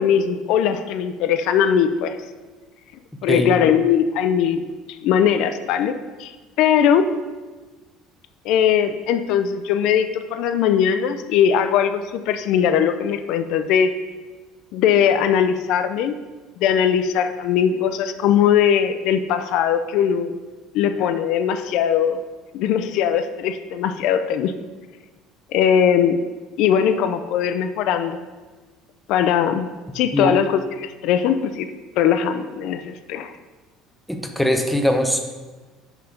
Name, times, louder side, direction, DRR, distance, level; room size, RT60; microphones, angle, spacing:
voice 1, 0.0-2.2 3.2-4.7 5.0-7.1 8.4-14.0 14.7-16.2 16.6-20.3 20.7-22.2 22.5-24.5 25.5-26.2 26.6-28.2 29.1-31.7 32.0-33.3, left 8 dB, 60° left, 10 dB, 0.4 m, -20 dB
voice 2, 34.1-35.3, equal, ahead, 4 dB, 0.6 m, -21 dB
5.8 x 5.0 x 5.7 m, 1.3 s
cardioid pair, 165°, 0 cm